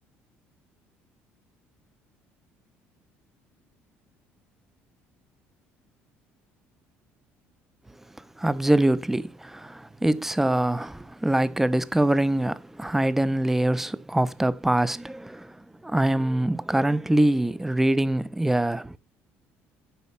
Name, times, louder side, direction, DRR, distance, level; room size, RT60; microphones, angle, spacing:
voice 1, 8.4-15.5 15.8-19.0, right 1 dB, 5° right, 0.7 m, -24 dB
10.0 x 4.0 x 7.1 m
cardioid pair, 115°, 5 cm